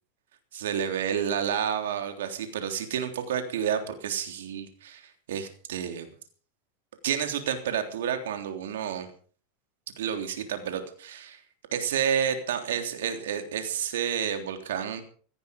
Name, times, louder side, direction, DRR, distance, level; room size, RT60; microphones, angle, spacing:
voice 1, 0.5-6.1 7.0-9.1 10.0-11.4 11.7-15.0, right 8 dB, 90° right, 7 dB, 3.3 m, -30 dB
18.0 x 14.5 x 5.3 m, 0.43 s
supercardioid pair, 135°, 0 cm